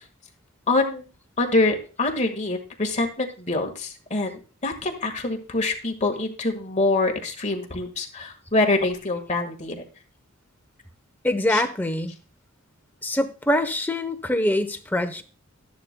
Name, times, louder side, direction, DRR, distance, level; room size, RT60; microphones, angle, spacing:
voice 1, 0.7-1.1 1.4-9.7 11.5-11.6, left 2 dB, 35° left, 3 dB, 1.6 m, -25 dB
voice 2, 11.2-12.1 13.0-15.2, left 1 dB, 10° left, 8 dB, 0.8 m, -24 dB
13.5 x 10.5 x 2.2 m, 0.36 s
head